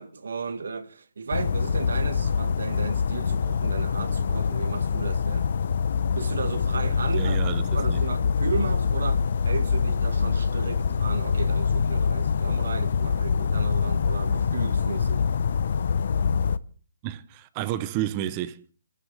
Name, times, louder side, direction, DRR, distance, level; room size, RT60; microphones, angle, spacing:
voice 1, 0.0-5.5 6.1-7.4 7.7-15.3, right 5 dB, 75° right, 1.8 m, -34 dB
sound 1, 1.3-16.6, left 6 dB, 50° left, 0.8 m, -25 dB
voice 2, 7.1-8.0 17.0-18.6, right 12 dB, 20° right, 0.8 m, -31 dB
29.5 x 14.5 x 3.4 m
hypercardioid pair, 175°, 0 cm